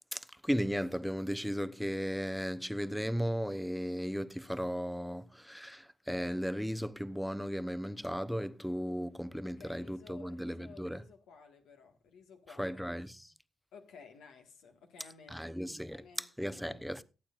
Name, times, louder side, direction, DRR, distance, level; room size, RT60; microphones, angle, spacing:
voice 1, 0.1-11.0 12.6-13.3 15.3-17.0, equal, ahead, 0.8 m, -36 dB
voice 2, 9.4-12.8 13.7-15.5 15.9-16.8, left 5 dB, 75° left, 1.7 m, -55 dB
22.5 x 8.7 x 2.5 m
hypercardioid pair, 50°, 0 cm